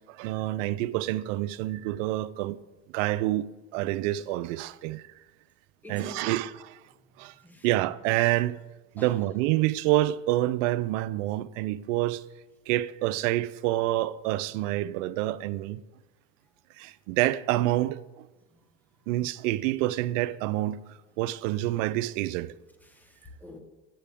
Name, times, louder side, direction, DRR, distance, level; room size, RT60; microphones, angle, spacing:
voice 1, 0.1-2.6 2.9-5.0 5.9-6.8 7.2-7.3 7.6-8.6 8.9-12.2 12.7-15.8 16.8-18.3 19.1-20.8 21.2-22.5, right 16 dB, 70° right, 0.5 m, -27 dB
voice 2, 5.8-6.4 7.4-7.7 9.0-9.3 22.8-23.6, left 1 dB, 5° left, 1.0 m, -46 dB
8.7 x 7.5 x 3.5 m
supercardioid pair, 115°, 39 cm